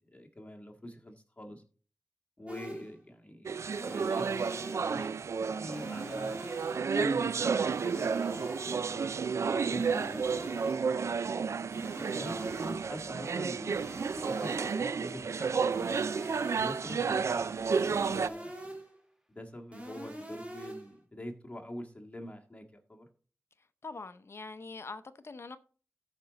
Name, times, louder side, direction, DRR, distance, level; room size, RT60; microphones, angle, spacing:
voice 1, 0.1-1.6 2.4-3.6 3.9-4.4 4.7-5.2 5.5-6.3 6.9-9.4 9.7-11.4 11.9-13.9 14.4-16.1 16.5-18.8 19.3-23.1, left 1 dB, 25° left, 1.8 m, -45 dB
sound 1, 2.5-3.0 3.7-5.0 5.7-7.0 7.7-9.0 9.7-11.0 11.7-13.0 13.7-15.0 15.7-17.0 17.7-19.0 19.7-21.0, right 1 dB, 25° right, 2.4 m, -44 dB
sound 2, 3.5-18.3, right 5 dB, 70° right, 0.3 m, -31 dB
Explosion, 16.8-19.0, equal, 10° right, 1.2 m, -57 dB
voice 2, 23.8-25.6, left 3 dB, 55° left, 0.7 m, -43 dB
13.5 x 5.2 x 4.0 m
wide cardioid pair, 65°, 5 cm